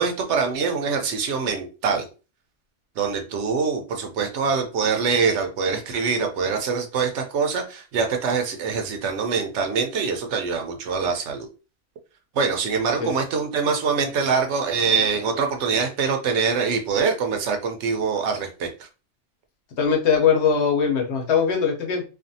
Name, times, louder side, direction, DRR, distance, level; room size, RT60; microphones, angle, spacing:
voice 1, 0.0-2.1 3.0-11.5 12.4-18.9, right 5 dB, 75° right, 5 dB, 0.9 m, -24 dB
voice 2, 19.8-22.0, left 6 dB, 70° left, 2 dB, 1.0 m, -21 dB
2.5 x 2.3 x 2.6 m, 0.33 s
omnidirectional pair, 1.2 m